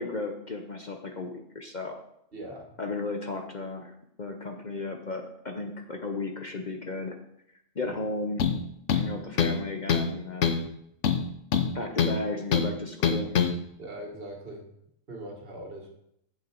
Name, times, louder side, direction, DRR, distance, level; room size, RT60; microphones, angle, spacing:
voice 1, 0.0-2.0 2.8-7.1 7.7-8.5 8.9-10.6 11.7-13.5, left 3 dB, 40° left, 4 dB, 0.8 m, -34 dB
voice 2, 2.3-2.7 7.8-8.0 13.8-14.6 15.1-15.9, right 1 dB, 50° right, 0 dB, 1.9 m, -40 dB
sound 1, 8.4-8.6 8.9-9.6 9.9-10.1 10.4-10.7 11.0-12.2 12.5-12.7 13.0-13.5, left 7 dB, 70° left, 1.1 m, -24 dB
8.2 x 7.0 x 4.5 m, 0.75 s
omnidirectional pair, 1.3 m